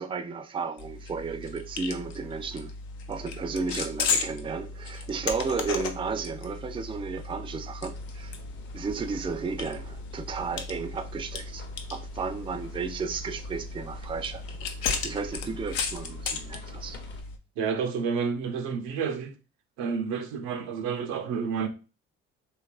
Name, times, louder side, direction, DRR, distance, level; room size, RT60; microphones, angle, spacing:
voice 1, 0.0-2.7 3.1-8.3 8.7-17.0, right 5 dB, 20° right, 0.3 m, -33 dB
sound 1, 0.8-17.4, left 4 dB, 85° left, 0.5 m, -35 dB
sound 2, 7.9-17.2, left 3 dB, 40° left, 0.6 m, -48 dB
voice 2, 17.6-19.3 19.8-21.7, right 6 dB, 85° right, 0.5 m, -30 dB
2.8 x 2.4 x 2.3 m
supercardioid pair, 55°, 30 cm